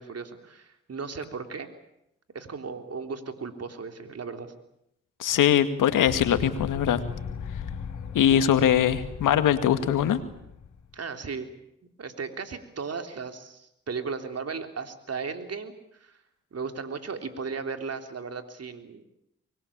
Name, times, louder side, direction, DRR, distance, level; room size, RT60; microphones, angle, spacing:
voice 1, 0.0-1.7 2.3-4.5 10.9-11.5 12.0-16.2 16.5-19.0, right 5 dB, 50° right, 7 dB, 3.7 m, -36 dB
voice 2, 5.2-7.0 8.1-10.2, left 10 dB, 80° left, 10 dB, 2.1 m, -22 dB
sound 1, 6.1-10.9, left 6 dB, 65° left, 4.7 m, -38 dB
24.5 x 21.5 x 8.8 m, 0.80 s
supercardioid pair, 50°, 31 cm